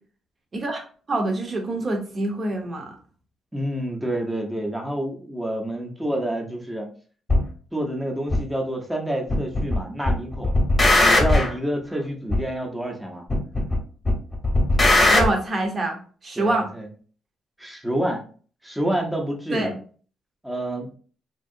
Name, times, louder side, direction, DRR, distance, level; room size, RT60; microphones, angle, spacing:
voice 1, 0.5-3.0 15.1-16.7 19.5-19.7, right 2 dB, 40° right, 3 dB, 0.8 m, -26 dB
voice 2, 3.5-6.9 7.7-10.5 11.0-13.2 16.4-16.9 17.6-18.2 18.6-19.7 20.4-20.9, right 1 dB, 5° right, 1 dB, 0.7 m, -28 dB
sound 1, 7.3-7.4 8.3-8.4 9.3-9.8 10.0-11.5 12.3-12.4 13.3-13.8 14.0-15.3, left 2 dB, 20° left, 0.9 m, -18 dB
2.9 x 2.7 x 2.6 m, 0.42 s
cardioid pair, 90°, 0 cm